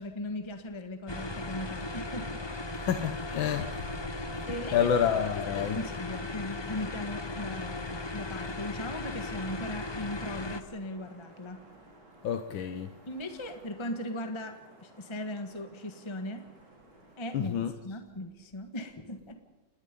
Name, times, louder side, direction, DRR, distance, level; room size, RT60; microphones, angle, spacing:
voice 1, 0.0-2.4 4.5-4.9 5.5-11.6 13.1-16.4 17.2-17.5 17.8-19.3, left 1 dB, 15° left, 1.4 m, -38 dB
sound 1, 1.1-10.6, left 2 dB, 30° left, 0.4 m, -37 dB
voice 2, 2.8-3.8 4.7-5.8 12.2-12.9 17.3-17.7, left 8 dB, 75° left, 1.7 m, -28 dB
sound 2, 7.4-17.4, right 2 dB, 55° right, 6.0 m, -56 dB
29.0 x 20.0 x 5.4 m
omnidirectional pair, 2.2 m